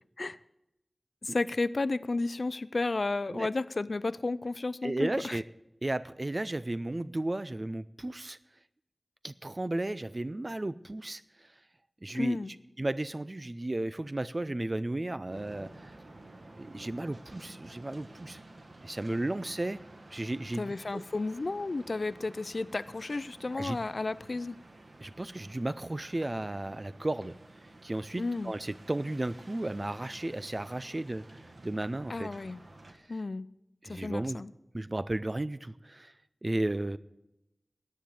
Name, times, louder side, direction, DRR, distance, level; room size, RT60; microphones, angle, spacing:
voice 1, 1.2-5.4 12.1-12.5 20.6-24.6 28.2-28.5 32.1-32.6 33.1-33.5 33.9-34.5, left 3 dB, 75° left, 18 dB, 0.4 m, -32 dB
voice 2, 4.8-5.4 5.8-8.4 9.2-11.2 12.0-12.4 12.8-15.9 16.6-18.4 18.8-19.8 20.1-21.0 23.6-23.8 25.0-27.4 27.8-31.3 31.6-32.3 33.8-34.4 34.7-36.1 36.4-37.0, right 1 dB, 45° right, 16 dB, 0.4 m, -34 dB
sound 1, 15.3-32.9, right 2 dB, 75° right, 1.4 m, -52 dB
10.0 x 8.7 x 7.7 m, 0.90 s
wide cardioid pair, 45°, 0 cm